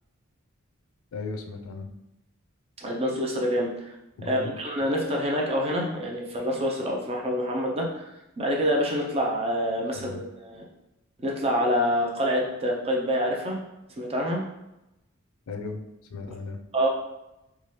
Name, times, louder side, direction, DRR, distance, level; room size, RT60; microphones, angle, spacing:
voice 1, 1.1-1.9 4.2-4.5 9.9-10.2 15.5-15.8 16.1-16.6, left 3 dB, 75° left, 5 dB, 0.4 m, -36 dB
voice 2, 2.8-3.9 4.2-8.1 8.4-10.6 11.2-13.6 14.0-14.4 16.7-16.9, equal, 25° right, -1 dB, 0.5 m, -26 dB
2.8 x 2.3 x 3.0 m, 0.93 s
head